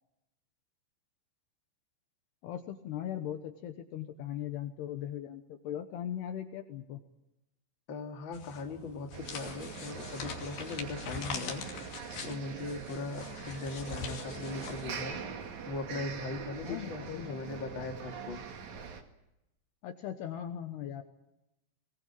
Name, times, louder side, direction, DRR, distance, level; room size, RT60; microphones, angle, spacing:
voice 1, 2.4-7.0 16.6-17.4 19.8-21.0, left 10 dB, 70° left, 7 dB, 2.9 m, -39 dB
voice 2, 7.9-11.6 12.2-15.2 15.7-18.4, left 3 dB, 35° left, 3 dB, 2.2 m, -39 dB
sound 1, 8.3-15.1, left 5 dB, 55° left, 4.2 m, -43 dB
sound 2, 9.1-19.0, right 6 dB, 50° right, 2.6 m, -43 dB
22.5 x 20.0 x 8.7 m, 0.89 s
omnidirectional pair, 5.6 m